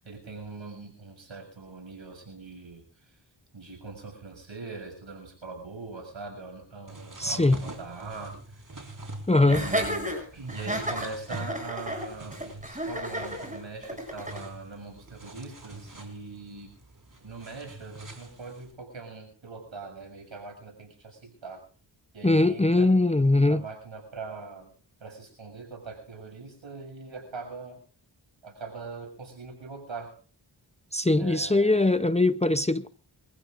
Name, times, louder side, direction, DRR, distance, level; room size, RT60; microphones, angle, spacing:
voice 1, 0.0-2.8 3.5-8.4 9.3-16.7 17.2-21.6 22.1-22.9 23.2-24.7 25.0-27.8 28.4-30.2 31.2-32.0, right 3 dB, 75° right, 7.2 m, -41 dB
sound 1, 6.9-18.7, right 2 dB, 40° right, 4.8 m, -45 dB
voice 2, 7.2-7.6 9.3-9.6 22.2-23.6 30.9-32.9, left 2 dB, 15° left, 0.7 m, -21 dB
Laughter, 9.5-14.5, equal, 15° right, 7.3 m, -32 dB
28.0 x 15.0 x 2.6 m
cardioid pair, 45°, 47 cm